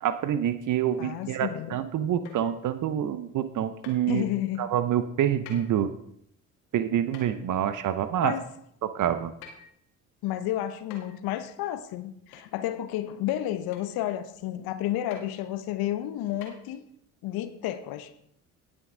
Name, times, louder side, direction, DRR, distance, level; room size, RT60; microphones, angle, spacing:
voice 1, 0.0-4.3 4.6-5.9 6.7-8.4 8.8-9.3, right 10 dB, 45° right, 12 dB, 0.8 m, -27 dB
voice 2, 1.0-1.7 4.1-4.6 8.2-8.4 10.2-16.8 17.2-18.1, left 13 dB, 55° left, 11 dB, 1.0 m, -31 dB
sound 1, 2.2-2.6 3.8-4.0 5.4-5.7 7.1-7.4 9.4-9.8 10.9-11.2 12.3-12.5 13.7-13.9 15.1-15.3 16.4-16.5, left 6 dB, 75° left, 2.0 m, -46 dB
18.0 x 6.3 x 3.8 m, 0.71 s
figure-of-eight pair, 50°, 43 cm